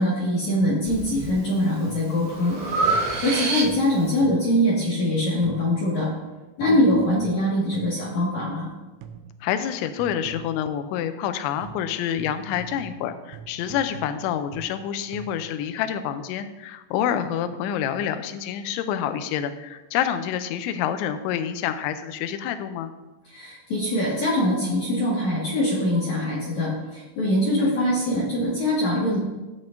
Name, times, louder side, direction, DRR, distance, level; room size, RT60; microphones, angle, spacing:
voice 1, 0.0-2.6 2.8-6.1 6.6-8.7 23.3-29.2, left 1 dB, 55° left, -6 dB, 2.3 m, -23 dB
sound 1, 0.6-1.0 1.9-2.3 2.9-4.7 5.4-5.9 6.6-8.7 9.0-9.5 10.0-10.8 11.6-15.6, right 7 dB, 85° right, 2.5 m, -43 dB
Breathing, 0.8-1.3 1.8-4.1, right 3 dB, 65° right, 3.3 m, -26 dB
voice 2, 9.4-22.9 27.6-27.8, left 9 dB, 80° left, 9 dB, 2.8 m, -28 dB
18.0 x 6.4 x 2.6 m, 1.1 s
omnidirectional pair, 5.7 m